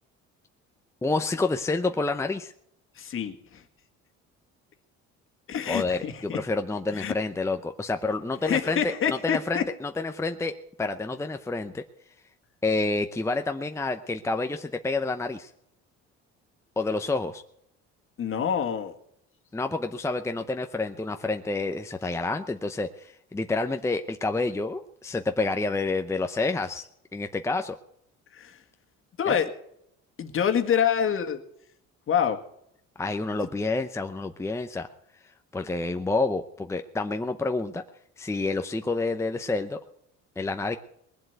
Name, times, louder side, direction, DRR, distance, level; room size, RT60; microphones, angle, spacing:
voice 1, 1.0-2.5 5.7-11.8 12.6-15.5 16.8-17.4 19.5-26.8 27.1-27.8 29.3-29.4 33.0-34.9 35.5-37.8 38.2-39.8 40.4-40.8, left 3 dB, 10° left, 6 dB, 0.7 m, -28 dB
voice 2, 3.0-3.6 5.5-6.4 6.9-7.1 8.4-9.6 18.2-18.9 28.3-28.6 29.2-29.5 30.2-31.4 32.1-32.4, left 8 dB, 45° left, 6 dB, 1.9 m, -26 dB
21.0 x 7.8 x 8.0 m, 0.74 s
cardioid pair, 120°, 29 cm